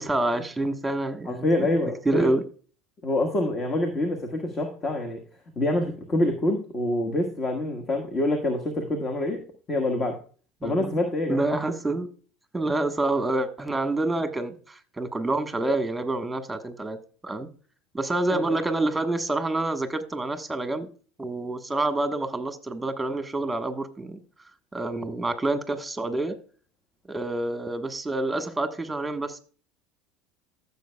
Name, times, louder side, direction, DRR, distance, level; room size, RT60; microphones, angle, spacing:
voice 1, 0.0-1.7 2.0-2.4 10.6-11.0 11.3-12.1 12.5-17.5 17.9-20.9 21.2-24.2 24.7-26.4 27.1-29.4, right 2 dB, 10° right, 8 dB, 1.4 m, -27 dB
voice 2, 1.2-2.3 3.0-5.2 5.6-9.4 9.7-10.2 10.6-11.4 18.3-18.6, left 1 dB, 35° left, 4 dB, 1.5 m, -26 dB
14.5 x 7.0 x 2.3 m, 0.40 s
hypercardioid pair, 80°, 0 cm